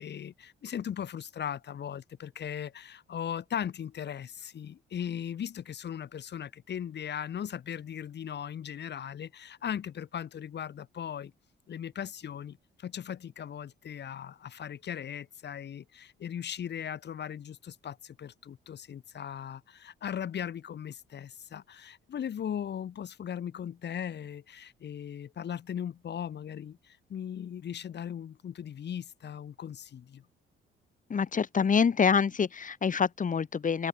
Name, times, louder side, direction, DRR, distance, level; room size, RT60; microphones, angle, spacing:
voice 1, 0.0-11.3 11.7-30.2, left 9 dB, 60° left, 5.7 m, -38 dB
voice 2, 31.1-33.9, left 6 dB, 40° left, 3.3 m, -26 dB
open air
cardioid pair, 90°, 20 cm